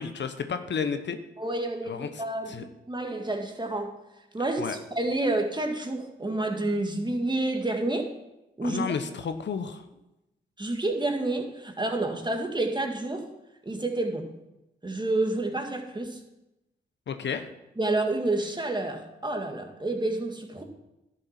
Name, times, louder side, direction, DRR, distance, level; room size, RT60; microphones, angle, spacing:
voice 1, 0.0-1.2 1.9-2.1 2.5-2.6 4.6-4.8 8.6-9.8 17.1-17.5, left 6 dB, 60° left, 0.9 m, -31 dB
voice 2, 1.4-4.0 4.3-8.2 8.6-8.9 10.6-13.3 13.7-14.3 14.8-16.2 17.8-20.6, right 2 dB, 20° right, 2.0 m, -29 dB
11.5 x 6.6 x 5.9 m
supercardioid pair, 40°, 21 cm